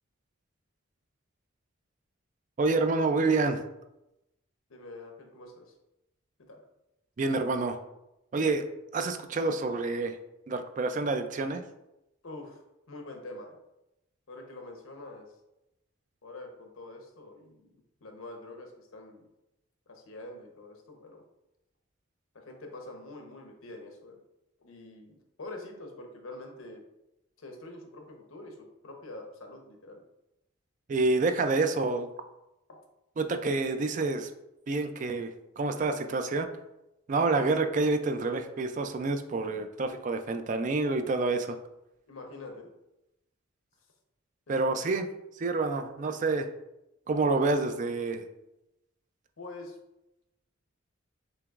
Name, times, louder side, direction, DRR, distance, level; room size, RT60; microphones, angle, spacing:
voice 1, 2.6-3.6 7.2-7.8 8.3-8.6 8.9-10.1 10.5-11.6 30.9-32.1 33.2-34.3 34.7-35.3 35.6-36.5 37.1-41.6 44.5-45.1 45.4-46.5 47.1-48.3, right 3 dB, 35° right, 7 dB, 0.3 m, -28 dB
voice 2, 4.7-5.7 6.5-6.6 12.2-12.6 12.9-13.6 14.3-15.3 16.2-19.3 19.9-21.2 22.3-24.2 24.6-26.8 27.4-30.0 32.7-32.8 42.1-42.7 44.5-44.7 49.4-49.8, left 2 dB, 85° left, 3 dB, 0.9 m, -45 dB
6.7 x 3.0 x 2.4 m, 0.90 s
head